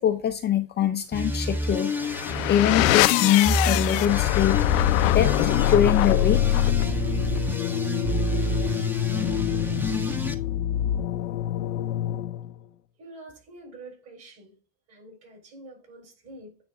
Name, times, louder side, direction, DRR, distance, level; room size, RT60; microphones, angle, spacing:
voice 1, 0.0-1.9 2.5-4.6 5.1-5.3 5.7-6.4, left 10 dB, 25° left, 0.5 m, -23 dB
sound 1, 1.1-10.3, right 1 dB, 5° right, 0.8 m, -29 dB
sound 2, 1.8-12.5, left 13 dB, 75° left, 0.6 m, -24 dB
voice 2, 13.0-14.6 14.9-16.6, right 2 dB, 40° right, 4.0 m, -46 dB
9.2 x 3.4 x 3.7 m
supercardioid pair, 120°, 40 cm